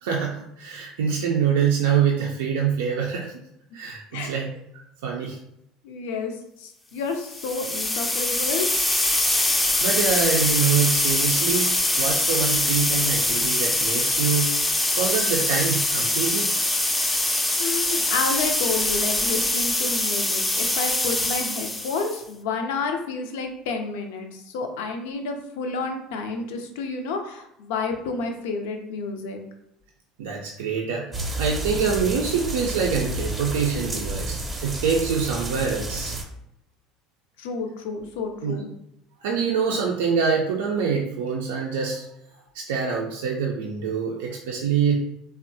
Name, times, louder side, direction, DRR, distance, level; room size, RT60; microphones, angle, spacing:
voice 1, 0.0-3.3 3.7-4.5 5.0-5.4 9.3-11.7 12.0-14.5 15.0-16.5 30.2-31.0 31.4-36.1 38.4-38.5 39.2-42.1 42.5-45.0, right 6 dB, 80° right, -2 dB, 0.4 m, -25 dB
voice 2, 5.8-8.7 17.6-29.4 37.4-38.7, left 4 dB, 75° left, 5 dB, 0.4 m, -30 dB
sound 1, 7.2-22.2, left 1 dB, 10° left, 0.4 m, -23 dB
sound 2, 31.1-36.2, right 1 dB, 20° right, 0.7 m, -30 dB
3.4 x 2.0 x 2.6 m, 0.80 s
hypercardioid pair, 75°, 0 cm